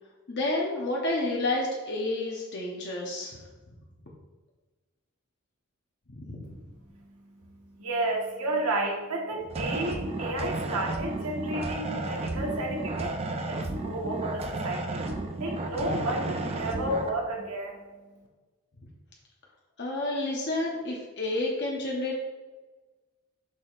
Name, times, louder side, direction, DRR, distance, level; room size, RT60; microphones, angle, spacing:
voice 1, 0.3-3.4 6.1-6.5 15.9-16.0 19.8-22.2, left 2 dB, 50° left, -3 dB, 0.9 m, -30 dB
voice 2, 6.5-15.1 15.4-17.8, right 1 dB, 80° right, 0 dB, 1.4 m, -32 dB
sound 1, 9.5-17.1, right 2 dB, 25° right, 0.5 m, -33 dB
7.4 x 6.2 x 2.5 m, 1.2 s
head